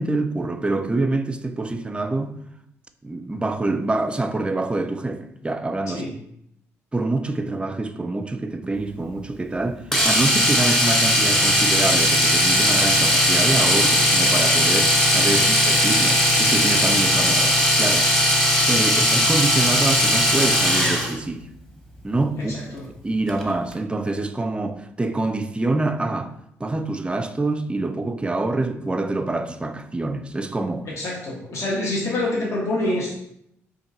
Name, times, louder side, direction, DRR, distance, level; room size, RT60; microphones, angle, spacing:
voice 1, 0.0-2.4 3.0-6.0 6.9-17.4 17.8-18.2 18.7-21.5 22.0-22.5 23.0-26.3 26.6-30.9, right 2 dB, 15° right, 0.3 m, -26 dB
Domestic sounds home sounds, 9.9-21.2 23.3-23.4 23.7-23.8, equal, 5° left, 0.9 m, -18 dB
voice 2, 22.3-22.8 30.9-33.1, left 1 dB, 50° left, 0.9 m, -27 dB
2.8 x 2.6 x 3.9 m
hypercardioid pair, 55°, 6 cm